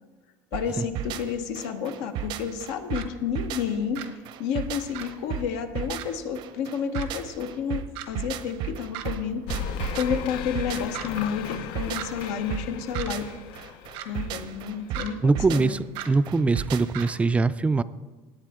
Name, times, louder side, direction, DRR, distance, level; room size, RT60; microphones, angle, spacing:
voice 1, 0.5-4.0 4.4-13.3 14.0-15.8, left 7 dB, 85° left, 6 dB, 1.1 m, -30 dB
sound 1, 0.5-17.1, right 9 dB, 60° right, 0.7 m, -35 dB
sound 2, 2.9-3.0 3.9-4.1 4.9-5.1 6.0-6.1 6.9-7.1 7.9-8.1 8.9-9.1 10.0-10.1 10.9-11.1 11.9-12.1 12.9-13.1 13.9-14.1 14.9-15.1 15.9-16.1 16.9-17.1, right 11 dB, 85° right, 1.1 m, -36 dB
sound 3, 9.5-14.9, left 10 dB, 70° left, 0.5 m, -37 dB
voice 2, 15.2-17.8, right 3 dB, 15° right, 14 dB, 0.3 m, -22 dB
17.5 x 8.6 x 3.7 m, 1.3 s
cardioid pair, 135°, 9 cm